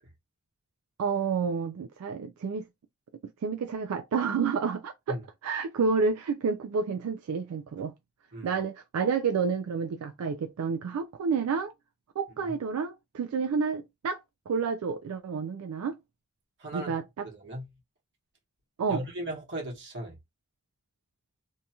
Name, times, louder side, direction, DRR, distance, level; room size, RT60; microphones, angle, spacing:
voice 1, 1.0-2.7 3.4-5.2 5.4-7.9 8.4-11.7 12.2-14.2 14.5-16.0 16.7-17.3 18.8-19.0, right 5 dB, 80° right, 0.3 m, -29 dB
voice 2, 16.6-16.9 17.2-17.7 18.9-20.1, right 1 dB, 55° right, 1.1 m, -37 dB
2.7 x 2.3 x 2.8 m
head